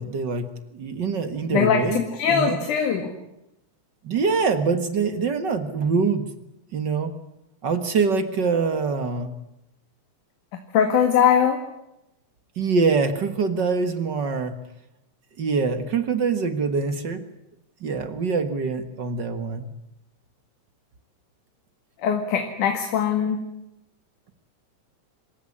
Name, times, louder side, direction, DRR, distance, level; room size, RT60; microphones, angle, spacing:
voice 1, 0.0-2.6 4.0-6.3 6.7-7.1 7.6-9.3 12.5-14.6 15.4-17.2 17.8-19.7, right 4 dB, 45° right, 10 dB, 1.4 m, -24 dB
voice 2, 1.5-3.1 10.5-11.6 22.0-23.4, left 7 dB, 65° left, 6 dB, 3.3 m, -21 dB
26.5 x 15.5 x 9.9 m, 0.89 s
omnidirectional pair, 4.0 m